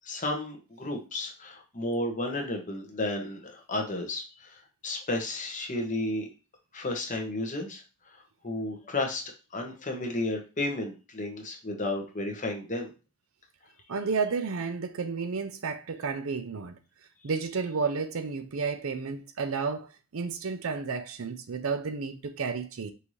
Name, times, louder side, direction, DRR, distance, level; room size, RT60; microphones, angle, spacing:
voice 1, 0.1-6.3 6.7-7.8 8.4-9.2 9.5-12.9, left 2 dB, 35° left, 1.1 m, -32 dB
voice 2, 13.9-16.8 17.2-22.9, right 5 dB, 80° right, 0.6 m, -32 dB
5.5 x 2.7 x 3.2 m
head